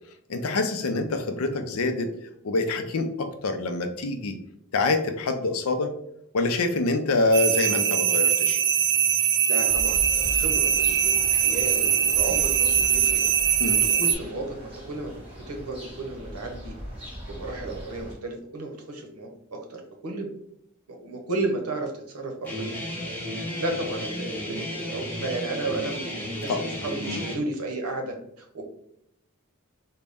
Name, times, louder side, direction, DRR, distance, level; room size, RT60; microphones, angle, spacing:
voice 1, 0.3-2.1 2.4-4.4 4.7-5.9 6.3-8.6 13.6-13.8 26.5-26.6 27.1-27.2, left 3 dB, 70° left, 7 dB, 0.5 m, -26 dB
sound 1, 7.3-14.1, right 9 dB, 45° right, 0.3 m, -22 dB
voice 2, 9.5-15.1 15.5-16.7 17.3-20.3 20.9-23.0 23.3-28.6, right 2 dB, 90° right, 3 dB, 0.8 m, -33 dB
sound 2, 9.6-18.1, equal, 25° right, 1.3 m, -39 dB
Guitar, 22.4-27.4, left 1 dB, 10° left, 0.8 m, -33 dB
3.9 x 2.2 x 3.5 m, 0.76 s
head